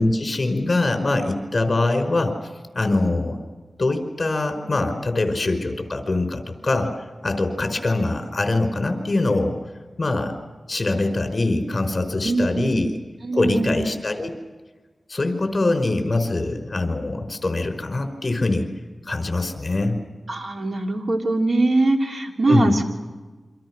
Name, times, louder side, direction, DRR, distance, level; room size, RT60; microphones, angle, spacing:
voice 1, 0.0-2.3 2.7-3.4 3.8-6.9 7.2-9.6 10.0-10.3 10.7-13.0 13.3-14.3 15.1-18.7 19.1-20.0 22.5-22.8, left 2 dB, 40° left, 5 dB, 5.1 m, -23 dB
voice 2, 12.2-12.8 13.2-13.8 20.3-22.8, right 2 dB, 65° right, 2 dB, 3.4 m, -22 dB
28.5 x 25.5 x 6.2 m, 1.3 s
wide cardioid pair, 85°, 0 cm